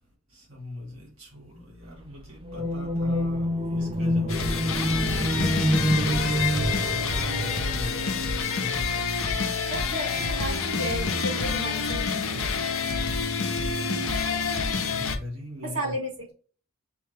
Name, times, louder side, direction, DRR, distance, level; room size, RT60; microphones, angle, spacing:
voice 1, 0.3-4.7 5.1-9.4 10.0-10.3 14.7-15.9, left 1 dB, 70° right, 1.8 m, -41 dB
sound 1, 2.4-8.4, equal, 25° right, 0.5 m, -27 dB
sound 2, 4.3-15.2, left 5 dB, 70° left, 0.7 m, -27 dB
voice 2, 9.7-12.1 15.6-16.3, right 1 dB, 90° right, 2.4 m, -33 dB
6.2 x 2.2 x 3.3 m
head